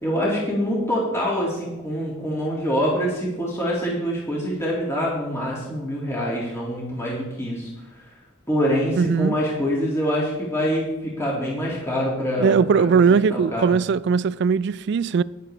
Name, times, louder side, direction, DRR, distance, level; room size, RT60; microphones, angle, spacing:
voice 1, 0.0-7.7 8.5-12.6 13.1-13.7, equal, 15° left, 2.2 m, -25 dB
voice 2, 9.0-9.4 12.4-15.2, right 6 dB, 60° right, 0.3 m, -19 dB
19.5 x 6.8 x 3.3 m
head